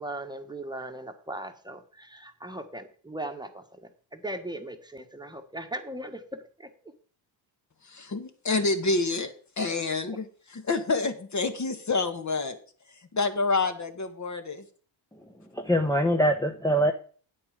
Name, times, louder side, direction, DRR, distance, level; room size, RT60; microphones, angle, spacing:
voice 1, 0.0-6.7, right 1 dB, 10° right, 5 dB, 1.4 m, -38 dB
voice 2, 7.8-12.6 13.1-14.6, left 3 dB, 35° left, 7 dB, 1.5 m, -28 dB
voice 3, 15.5-16.9, equal, 5° left, 3 dB, 1.0 m, -23 dB
8.6 x 8.5 x 5.1 m, 0.42 s
cardioid pair, 80°, 49 cm